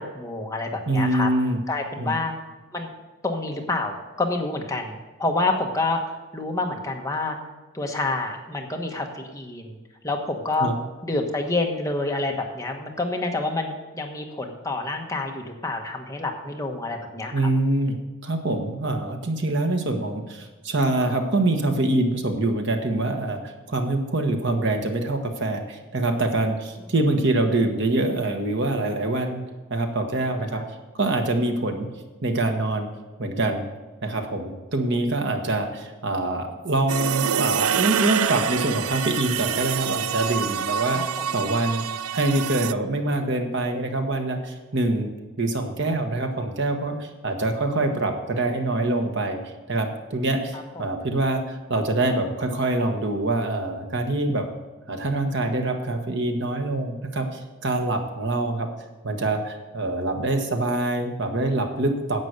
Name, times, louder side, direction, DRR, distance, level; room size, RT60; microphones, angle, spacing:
voice 1, 0.0-1.3 1.7-2.3 2.7-2.9 3.2-7.4 7.7-9.8 10.0-10.7 11.0-17.3 30.5-30.6 40.9-41.3 50.5-50.8, left 2 dB, 15° left, 2 dB, 1.2 m, -28 dB
voice 2, 0.9-1.6 2.0-2.1 10.6-10.7 17.3-18.0 18.2-29.4 29.7-30.6 30.9-31.9 32.2-32.9 33.2-33.7 34.0-41.0 41.3-41.9 42.1-45.1 45.4-54.5 54.9-58.7 59.0-62.2, right 2 dB, 55° right, 4 dB, 1.4 m, -25 dB
sound 1, 36.9-42.7, right 8 dB, 85° right, 0.4 m, -26 dB
11.0 x 8.2 x 6.7 m, 1.2 s
head